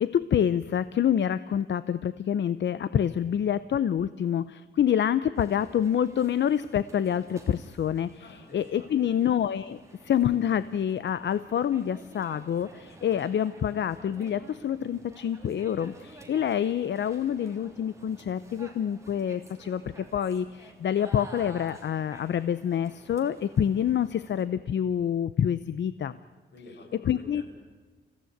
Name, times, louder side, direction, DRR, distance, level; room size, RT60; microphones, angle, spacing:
voice 1, 0.0-4.4 4.8-8.1 8.5-9.8 10.1-12.7 13.0-15.9 16.3-19.8 20.1-20.4 20.8-26.1 27.1-27.4, left 9 dB, 90° left, 15 dB, 0.6 m, -26 dB
sound 1, 5.3-24.4, right 2 dB, 15° right, 3.1 m, -52 dB
voice 2, 8.2-9.2 26.5-27.4, left 2 dB, 65° left, 1 dB, 7.1 m, -49 dB
27.5 x 16.0 x 9.3 m, 1.4 s
wide cardioid pair, 175°, 18 cm